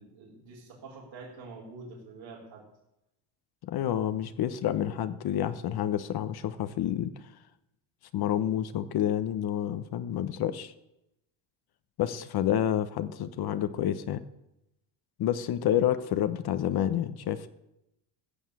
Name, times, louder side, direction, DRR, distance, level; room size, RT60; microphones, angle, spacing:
voice 1, 0.0-2.6, right 3 dB, 65° right, -6 dB, 4.6 m, -46 dB
voice 2, 3.6-7.1 8.1-10.7 12.0-14.2 15.2-17.5, left 10 dB, 50° left, 12 dB, 1.0 m, -29 dB
15.0 x 7.2 x 8.2 m, 0.87 s
supercardioid pair, 100°, 47 cm